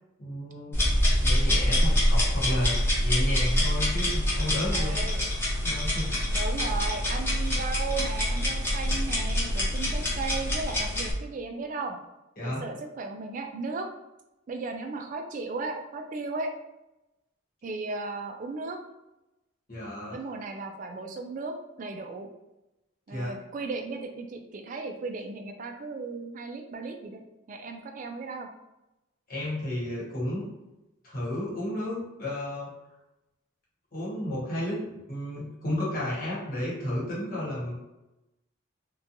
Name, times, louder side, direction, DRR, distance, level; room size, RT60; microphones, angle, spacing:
voice 1, 0.2-0.8 1.2-4.9 5.6-6.1 12.4-12.6 19.7-20.2 23.1-23.3 29.3-30.5 31.0-32.7 33.9-34.8 35.1-37.8, left 1 dB, 45° left, -6 dB, 1.1 m, -32 dB
sound 1, 0.7-11.1, left 1 dB, 10° left, 0.6 m, -25 dB
voice 2, 4.7-5.3 6.3-12.0 12.4-13.9 14.5-16.5 17.6-18.8 20.1-22.3 23.1-27.2 27.5-28.5, right 3 dB, 40° right, 4 dB, 0.3 m, -35 dB
2.8 x 2.2 x 2.5 m, 0.94 s
head